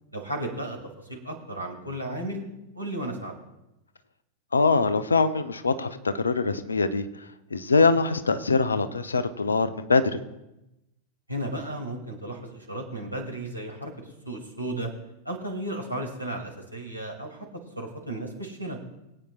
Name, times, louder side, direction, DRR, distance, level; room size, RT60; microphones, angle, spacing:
voice 1, 0.1-0.8 1.0-2.4 2.7-3.4 11.3-13.9 14.2-14.9 15.2-17.5 17.8-18.8, right 1 dB, 90° right, 0 dB, 2.5 m, -34 dB
voice 2, 4.5-7.0 7.5-10.2, left 4 dB, 75° left, 11 dB, 0.7 m, -23 dB
22.5 x 8.8 x 2.4 m, 0.93 s
figure-of-eight pair, 90°, 0 cm